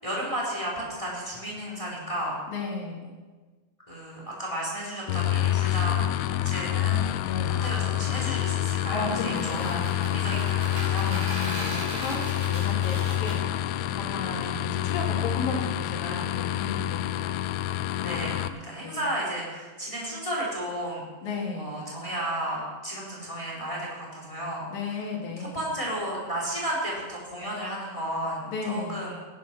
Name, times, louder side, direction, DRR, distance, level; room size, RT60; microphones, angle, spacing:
voice 1, 0.0-2.4 3.9-7.1 7.5-9.7 10.1-11.1 14.4-14.5 18.0-21.1 21.6-24.7 25.4-29.1, right 1 dB, 10° left, -3 dB, 3.7 m, -33 dB
voice 2, 2.5-3.1 7.3-7.7 8.9-10.4 11.0-17.4 18.8-19.0 21.2-21.8 24.7-25.6 28.5-29.1, left 3 dB, 65° left, -1 dB, 4.3 m, -34 dB
sound 1, 5.1-18.5, left 12 dB, 80° left, 2.5 m, -27 dB
sound 2, 9.2-13.4, right 1 dB, 70° right, 6.7 m, -37 dB
17.0 x 11.5 x 6.0 m, 1.4 s
omnidirectional pair, 4.5 m